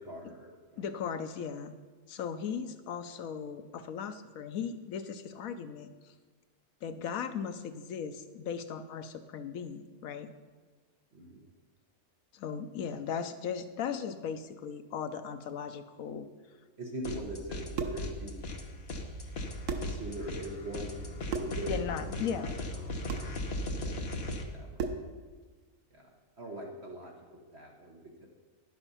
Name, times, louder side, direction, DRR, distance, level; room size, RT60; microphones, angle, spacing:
voice 1, 0.0-0.9 11.1-11.5 16.8-18.5 19.8-21.1 21.3-22.4 23.8-24.9 25.9-26.0 26.4-27.1 27.5-28.3, right 1 dB, 50° right, 0 dB, 1.5 m, -42 dB
voice 2, 0.8-1.7 2.1-6.1 6.8-10.3 12.3-16.3 21.7-22.5, left 7 dB, 70° left, 9 dB, 1.1 m, -37 dB
sound 1, 17.0-17.7 18.0-24.4, left 1 dB, 45° left, 1.2 m, -37 dB
sound 2, 17.5-18.1 19.3-19.4 19.7-20.0 21.3-21.6 23.1-23.3 24.8-25.1, right 5 dB, 90° right, 1.4 m, -35 dB
11.0 x 8.0 x 5.6 m, 1.4 s
omnidirectional pair, 1.6 m